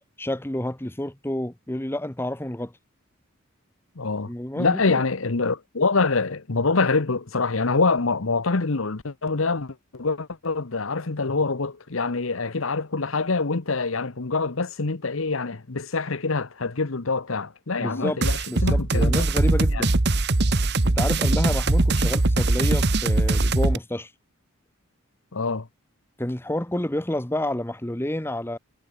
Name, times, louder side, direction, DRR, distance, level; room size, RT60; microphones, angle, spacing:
voice 1, 0.2-2.7 4.2-5.0 17.8-18.2 18.5-19.9 20.8-24.1 26.2-28.6, left 1 dB, 10° left, 0.9 m, -29 dB
voice 2, 4.0-4.3 4.6-19.3 19.7-19.9 25.3-25.7, left 3 dB, 70° left, 1.1 m, -25 dB
sound 1, 18.2-23.8, right 2 dB, 50° right, 1.2 m, -21 dB
head